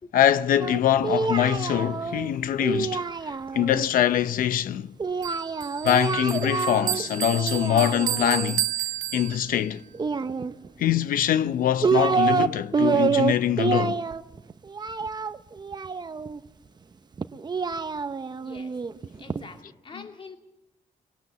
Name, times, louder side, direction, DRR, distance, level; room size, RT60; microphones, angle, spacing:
voice 1, 0.1-4.9 5.8-8.7 9.1-9.8 10.8-14.0, left 10 dB, 80° left, 0.7 m, -23 dB
Singing, 0.6-3.9 5.0-7.0 7.3-8.5 9.9-10.9 11.5-12.5 12.7-16.4 17.2-19.4, right 5 dB, 30° right, 0.8 m, -27 dB
Bell, 5.2-9.7, right 13 dB, 85° right, 1.0 m, -31 dB
voice 2, 18.1-18.8 19.2-20.4, left 4 dB, 40° left, 2.6 m, -45 dB
23.5 x 18.5 x 6.9 m
cardioid pair, 100°, 14 cm